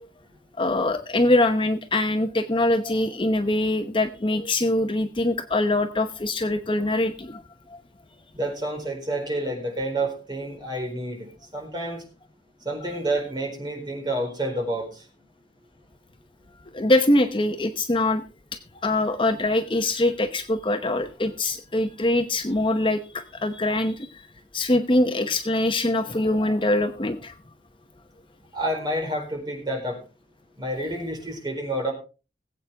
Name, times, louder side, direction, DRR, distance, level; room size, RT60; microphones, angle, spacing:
voice 1, 0.6-7.4 7.7-7.8 16.7-18.2 18.5-24.3 24.5-27.3, left 1 dB, 30° left, 6 dB, 0.9 m, -23 dB
voice 2, 8.3-12.0 12.6-15.0 28.5-30.0 30.6-31.9, right 1 dB, 25° right, 1 dB, 4.5 m, -29 dB
20.5 x 8.3 x 3.5 m, 0.32 s
head